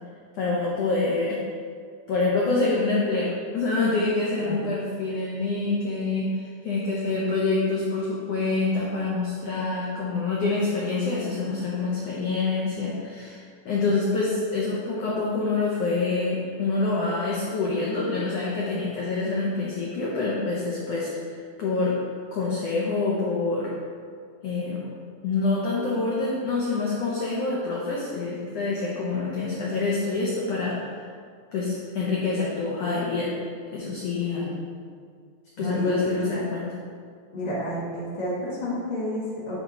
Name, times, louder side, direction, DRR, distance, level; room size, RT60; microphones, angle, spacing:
voice 1, 0.3-1.4 2.1-21.1 21.6-21.9 22.3-23.7 24.4-24.8 25.2-31.0 31.5-33.3 33.7-34.5 35.6-36.7, left 3 dB, 85° left, -5 dB, 1.4 m, -26 dB
voice 2, 4.4-4.7 34.2-34.6 35.6-36.1 37.3-39.5, equal, 70° left, -8 dB, 0.4 m, -31 dB
9.2 x 3.6 x 4.1 m, 2.1 s
omnidirectional pair, 3.9 m